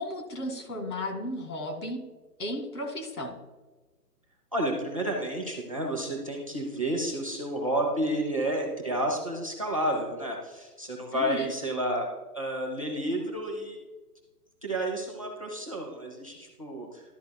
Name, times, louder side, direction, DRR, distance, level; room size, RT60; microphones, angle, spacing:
voice 1, 0.0-2.0 2.4-3.4 11.1-11.5, left 1 dB, 65° left, 4 dB, 2.2 m, -34 dB
voice 2, 4.5-12.1 12.3-13.8 14.6-17.0, right 1 dB, 20° right, 0 dB, 0.7 m, -30 dB
12.0 x 8.2 x 2.2 m, 1.2 s
hypercardioid pair, 180°, 48 cm